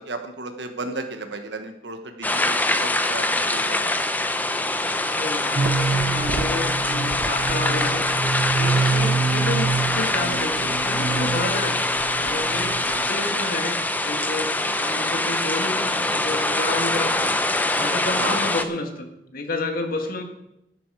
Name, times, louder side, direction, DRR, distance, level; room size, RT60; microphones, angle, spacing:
voice 1, 0.1-3.9 8.9-9.2 12.8-13.0 18.2-18.4, right 2 dB, 90° right, 6 dB, 1.4 m, -34 dB
sound 1, 2.2-18.6, left 2 dB, 10° left, 0.7 m, -24 dB
voice 2, 5.2-8.1 8.6-11.8 12.2-17.4 17.8-20.2, left 2 dB, 55° left, 5 dB, 1.8 m, -30 dB
sound 2, 5.6-13.1, right 4 dB, 55° right, 0.5 m, -27 dB
11.5 x 11.0 x 4.9 m, 0.82 s
head